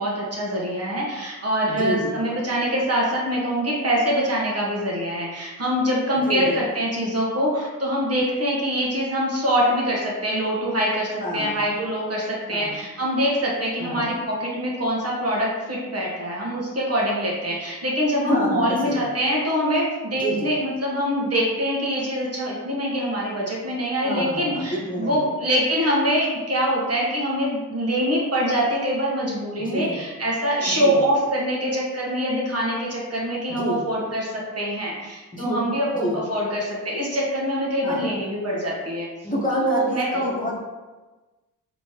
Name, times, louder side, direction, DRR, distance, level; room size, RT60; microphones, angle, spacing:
voice 1, 0.0-39.1 39.5-40.3, equal, 40° right, -5 dB, 1.4 m, -24 dB
voice 2, 1.7-2.2 6.3-6.6 11.2-11.7 12.5-12.8 13.8-14.1 18.2-19.0 20.2-20.5 24.0-25.3 29.6-30.0 30.7-31.0 33.5-33.8 35.3-35.7 35.9-36.2 37.8-38.1 39.2-40.6, equal, 20° left, -5 dB, 1.3 m, -28 dB
4.2 x 3.1 x 2.9 m, 1.2 s
supercardioid pair, 55°, 39 cm